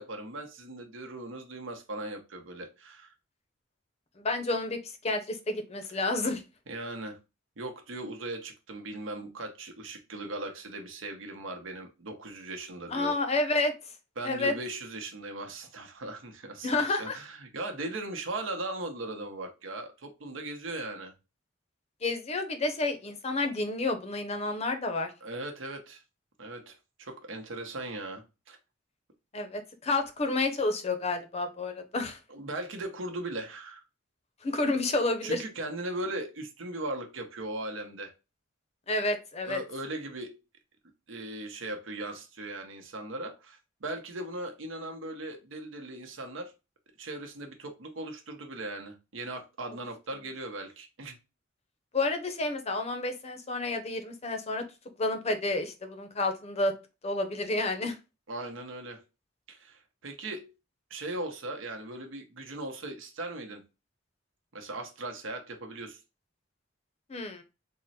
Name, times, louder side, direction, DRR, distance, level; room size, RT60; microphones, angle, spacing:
voice 1, 0.0-3.1 6.7-7.2 7.6-13.2 14.2-21.1 25.2-26.0 26.4-28.6 32.3-33.8 35.2-38.1 39.4-40.4 41.1-46.5 47.0-51.2 58.3-59.0 59.5-60.5 60.9-63.6 64.5-66.0, right 2 dB, 90° right, 0.9 m, -38 dB
voice 2, 4.2-6.4 12.9-13.7 14.2-14.5 16.6-17.2 22.0-25.1 29.3-32.2 34.4-35.4 38.9-39.6 51.9-54.6 55.0-56.7 57.0-58.0 67.1-67.4, left 2 dB, 35° left, 0.6 m, -30 dB
3.7 x 2.1 x 4.1 m
head